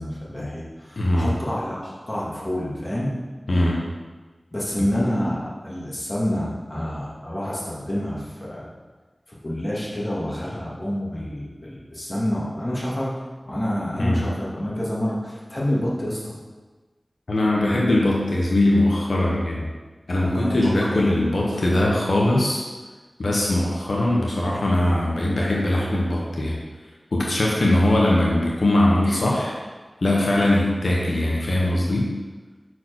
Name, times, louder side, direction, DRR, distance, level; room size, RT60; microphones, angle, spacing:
voice 1, 0.0-3.1 4.5-8.7 9.4-13.1 13.5-16.3 20.2-21.1, left 1 dB, 30° left, -7 dB, 2.6 m, -28 dB
voice 2, 1.0-1.3 3.5-3.8 4.8-4.9 14.0-14.3 17.3-19.7 20.1-22.6 23.2-26.6 27.1-29.5 30.0-32.1, left 1 dB, 90° left, -3 dB, 1.2 m, -21 dB
6.0 x 4.8 x 6.3 m, 1.3 s
wide cardioid pair, 45°, 0 cm